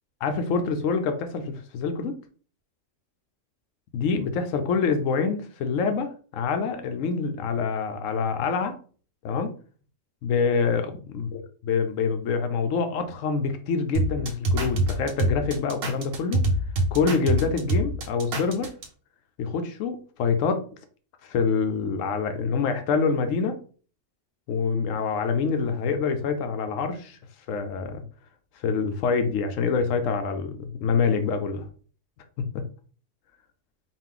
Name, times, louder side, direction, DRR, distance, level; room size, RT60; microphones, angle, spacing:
voice 1, 0.2-2.2 3.9-8.8 9.2-9.5 10.2-16.4 16.9-18.7 19.4-20.7 21.2-23.6 24.5-27.2 27.5-28.0 28.6-31.7 32.5-32.6, left 5 dB, 90° left, 7 dB, 1.0 m, -26 dB
sound 1, 13.9-18.8, right 1 dB, 60° right, 0.9 m, -25 dB
4.2 x 2.4 x 3.7 m, 0.41 s
omnidirectional pair, 1.3 m